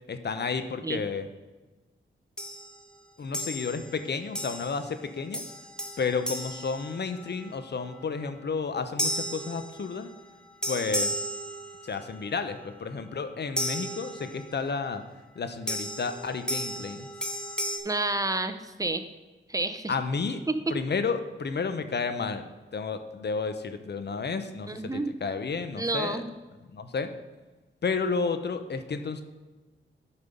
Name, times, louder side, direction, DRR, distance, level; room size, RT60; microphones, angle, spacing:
voice 1, 0.1-1.3 3.2-5.4 6.0-10.1 10.7-11.2 11.8-15.0 15.4-17.1 19.9-20.4 20.7-26.2 26.7-27.1 27.8-29.2, left 5 dB, 55° left, 9 dB, 0.9 m, -31 dB
sound 1, 2.4-2.8 3.3-3.9 4.4-4.9 5.3-7.5 9.0-10.2 10.6-12.1 13.6-14.6 15.7-17.8, equal, 5° left, 1.2 m, -34 dB
voice 2, 17.8-19.0 19.5-19.9 20.5-20.6 24.7-25.1 25.8-26.3, right 2 dB, 15° right, 9 dB, 0.8 m, -29 dB
9.9 x 5.4 x 5.4 m, 1.2 s
cardioid pair, 65°, 21 cm